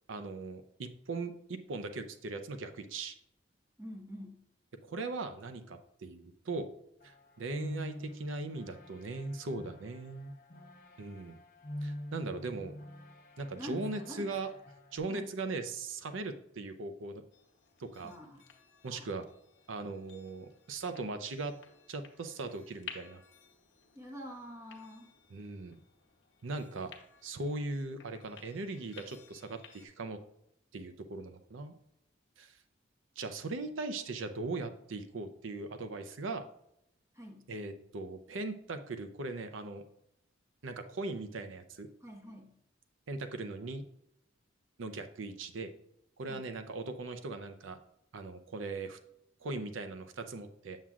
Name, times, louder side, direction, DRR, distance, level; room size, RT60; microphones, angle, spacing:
voice 1, 0.1-3.2 4.8-6.7 7.0-10.3 11.0-11.4 11.8-12.8 13.4-14.5 14.9-17.2 17.8-18.1 18.8-19.3 19.7-21.6 21.9-23.2 25.3-25.8 26.4-26.9 27.2-30.2 30.7-31.7 32.4-32.6 33.2-36.4 37.5-39.8 40.6-41.9 43.1-43.8 44.8-45.7 46.2-47.8 48.1-49.0 49.4-50.8, right 3 dB, 90° right, 8 dB, 0.6 m, -39 dB
voice 2, 3.8-4.4 13.6-14.4 15.1-15.3 18.0-18.4 18.9-19.1 23.9-25.1 37.1-37.5 42.0-42.5 46.3-46.5, equal, 15° right, 1 dB, 1.1 m, -46 dB
sound 1, 7.0-15.0, left 1 dB, 45° left, 0.8 m, -45 dB
sound 2, 17.3-29.9, left 7 dB, 75° left, 1.0 m, -55 dB
7.4 x 7.2 x 2.4 m, 0.76 s
head